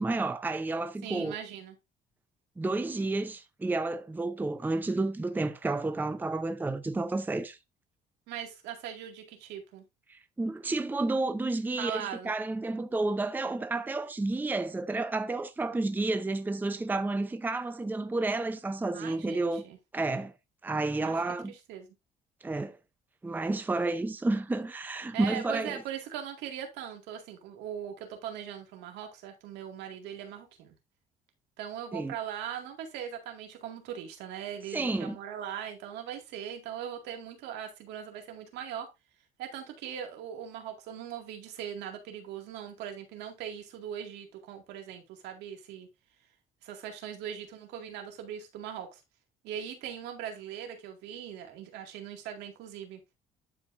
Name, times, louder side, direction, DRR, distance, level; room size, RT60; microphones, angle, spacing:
voice 1, 0.0-1.4 2.6-7.6 10.1-19.6 19.9-20.3 20.6-21.5 22.4-22.8 23.2-25.8 31.9-32.2 34.7-35.2, right 2 dB, 10° right, 0.6 m, -31 dB
voice 2, 1.0-1.8 8.3-9.8 11.8-12.3 18.9-19.8 21.0-21.1 21.5-21.9 25.1-30.7 31.6-38.9 39.4-45.9 46.6-49.0 49.4-53.0, right 9 dB, 90° right, 2.1 m, -40 dB
11.5 x 4.8 x 2.6 m
cardioid pair, 110°, 17 cm